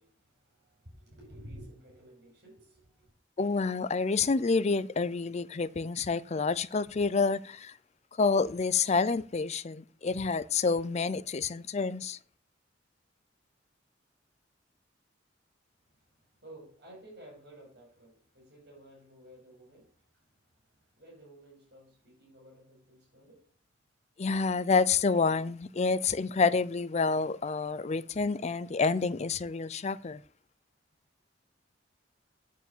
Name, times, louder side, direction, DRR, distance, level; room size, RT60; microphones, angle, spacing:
voice 1, 0.0-3.2 15.8-23.5, right 1 dB, 60° right, 5.6 m, -53 dB
voice 2, 3.4-7.7 8.2-12.2 24.2-30.2, left 4 dB, 35° left, 0.5 m, -28 dB
9.3 x 4.6 x 7.4 m
head